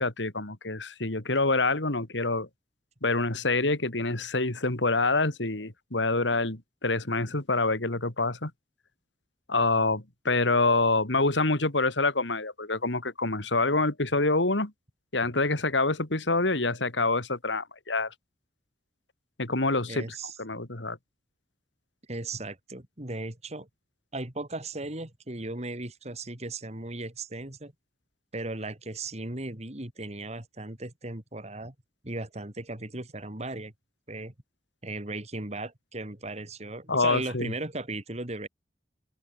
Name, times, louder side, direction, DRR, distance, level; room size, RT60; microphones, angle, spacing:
voice 1, 0.0-2.5 3.0-8.5 9.5-14.7 15.1-18.1 19.4-20.0 20.4-21.0 36.9-37.5, left 3 dB, 85° left, 3.1 m, -26 dB
voice 2, 19.9-20.4 22.1-23.7 24.1-27.7 28.3-31.7 32.0-33.7 34.1-34.3 34.8-38.5, right 2 dB, 35° right, 2.9 m, -36 dB
open air
head